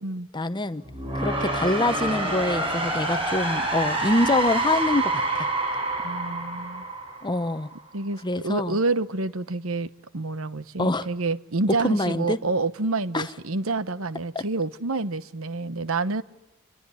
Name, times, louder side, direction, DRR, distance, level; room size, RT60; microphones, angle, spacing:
voice 1, 0.3-0.8 1.1-5.5 7.2-7.7 8.2-8.8 10.8-11.1 11.8-12.4 13.1-13.3 14.3-14.4, left 2 dB, 20° left, 1.0 m, -25 dB
sound 1, 0.8-7.8, right 2 dB, 25° right, 6.3 m, -27 dB
voice 2, 6.0-6.8 7.9-16.2, right 3 dB, 70° right, 1.1 m, -28 dB
27.5 x 21.5 x 10.0 m
head